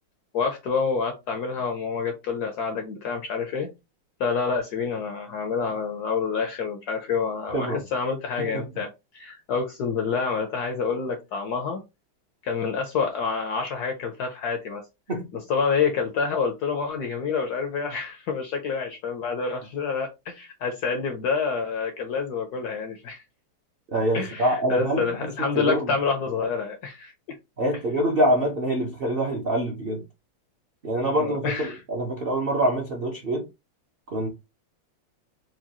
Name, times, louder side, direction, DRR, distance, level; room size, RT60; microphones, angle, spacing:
voice 1, 0.3-3.7 4.2-11.8 12.4-14.8 15.3-23.2 24.1-27.1 31.1-31.8, left 5 dB, 70° left, 0.9 m, -28 dB
voice 2, 23.9-25.0 25.5-25.9 27.6-30.0 30.8-33.4 34.1-34.3, right 1 dB, 65° right, 0.5 m, -25 dB
4.7 x 2.3 x 2.9 m
omnidirectional pair, 2.3 m